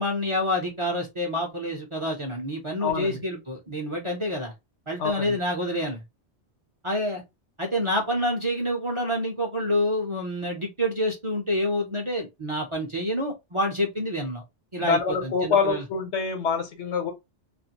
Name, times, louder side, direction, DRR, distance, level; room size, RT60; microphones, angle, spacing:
voice 1, 0.0-4.5 4.9-6.0 6.8-7.2 7.6-14.4 14.7-15.8, left 1 dB, 35° right, 0.5 m, -28 dB
voice 2, 2.8-3.2 5.0-5.4 14.8-17.1, left 5 dB, 80° left, 1.1 m, -26 dB
2.5 x 2.4 x 2.8 m
omnidirectional pair, 1.2 m